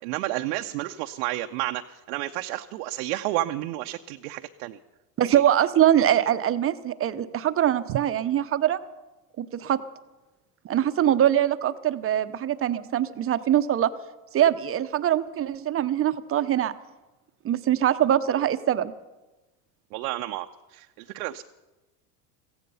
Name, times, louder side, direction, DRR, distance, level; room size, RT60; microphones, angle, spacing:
voice 1, 0.0-4.8 5.2-5.4 7.9-8.0 19.9-21.4, right 16 dB, 65° right, 5 dB, 0.7 m, -31 dB
voice 2, 5.2-8.8 9.4-9.8 10.6-13.9 14.3-16.7 17.4-18.9, right 11 dB, 30° right, 13 dB, 0.8 m, -23 dB
16.5 x 15.5 x 5.6 m, 1.1 s
supercardioid pair, 105°, 47 cm